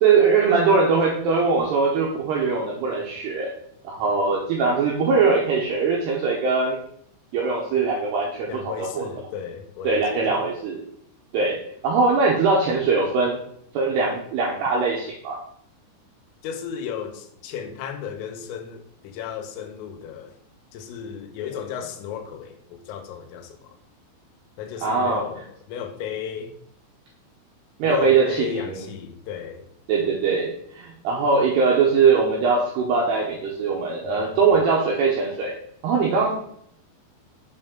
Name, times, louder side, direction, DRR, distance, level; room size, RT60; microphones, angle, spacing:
voice 1, 0.0-3.5 3.8-6.8 7.3-9.1 9.8-10.8 11.3-11.6 11.8-13.4 13.7-15.4 24.8-25.3 27.8-28.9 29.9-35.5 35.8-36.3, right 4 dB, 80° right, -2 dB, 2.3 m, -21 dB
voice 2, 8.5-10.4 16.4-20.3 20.7-23.8 24.6-26.5 27.8-29.7 34.0-34.5, left 8 dB, 85° left, 6 dB, 3.3 m, -35 dB
6.9 x 5.3 x 3.7 m, 0.68 s
omnidirectional pair, 5.9 m